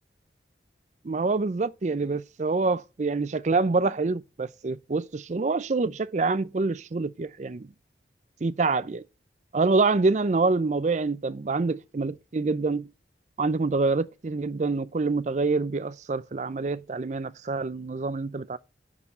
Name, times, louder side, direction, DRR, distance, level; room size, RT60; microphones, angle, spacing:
voice 1, 1.0-7.7 8.4-9.0 9.5-12.9 13.4-18.6, right 3 dB, 40° right, 0.4 m, -26 dB
9.7 x 4.6 x 7.1 m
head